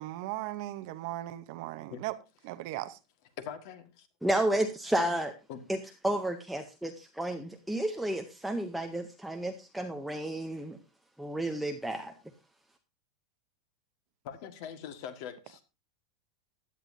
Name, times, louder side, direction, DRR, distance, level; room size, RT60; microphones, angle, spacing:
voice 1, 0.0-2.1 2.4-3.0, right 16 dB, 40° right, 0.9 m, -37 dB
voice 2, 3.4-4.1 5.5-5.6 14.2-15.6, left 8 dB, 40° left, 1.7 m, -42 dB
voice 3, 4.2-5.3 5.7-5.8 6.0-10.8 11.2-12.1, right 1 dB, ahead, 0.7 m, -31 dB
16.0 x 11.0 x 2.7 m
supercardioid pair, 180°, 3 cm